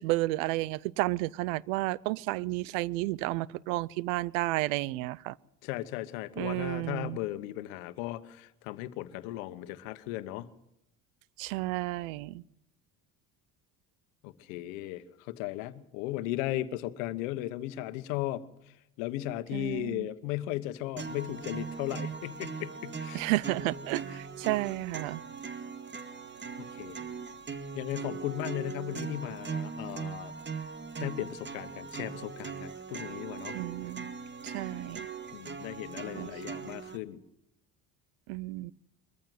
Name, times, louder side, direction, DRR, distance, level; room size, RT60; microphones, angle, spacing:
voice 1, 0.0-5.4 6.4-7.2 11.4-12.4 19.5-20.1 23.1-25.2 33.5-34.1 34.4-35.1 36.1-36.3 38.3-38.7, right 19 dB, 85° right, 25 dB, 0.7 m, -32 dB
voice 2, 5.6-10.5 14.2-23.2 24.1-24.2 26.6-27.0 27.7-30.3 31.0-33.6 35.3-37.2, left 14 dB, 85° left, 14 dB, 1.2 m, -36 dB
sound 1, 21.0-37.0, right 5 dB, 30° right, 2.0 m, -40 dB
22.5 x 14.5 x 7.8 m, 0.82 s
supercardioid pair, 80°, 39 cm